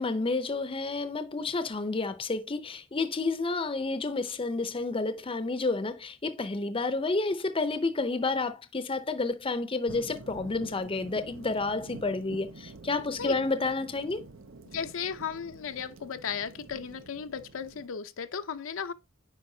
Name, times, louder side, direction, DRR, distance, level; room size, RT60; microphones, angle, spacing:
voice 1, 0.0-14.2, left 3 dB, 25° left, 0.6 m, -30 dB
sound 1, 9.9-17.9, right 3 dB, 70° right, 0.8 m, -47 dB
voice 2, 14.7-18.9, left 7 dB, 75° left, 0.6 m, -35 dB
9.7 x 4.5 x 2.7 m
head